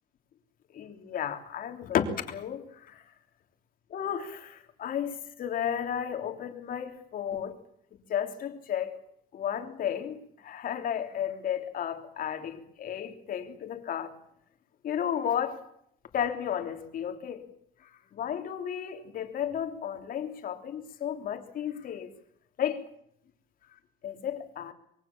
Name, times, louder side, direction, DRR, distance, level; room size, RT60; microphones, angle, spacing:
voice 1, 0.7-3.0 3.9-7.6 7.9-9.0 9.3-14.1 14.8-15.6 16.1-17.4 18.1-22.1 22.6-22.9 24.0-24.7, left 9 dB, 50° left, 3.3 m, -33 dB
25.5 x 22.5 x 7.3 m
cardioid pair, 155°, 19 cm